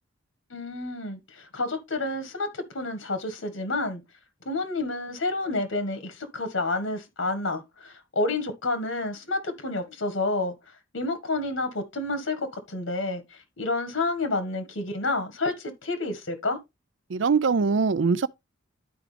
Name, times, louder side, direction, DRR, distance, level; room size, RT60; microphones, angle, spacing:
voice 1, 0.5-4.0 4.5-10.5 10.9-16.6, left 2 dB, 80° left, 1.8 m, -29 dB
voice 2, 17.1-18.3, right 5 dB, 65° right, 0.5 m, -22 dB
12.0 x 4.9 x 3.4 m
head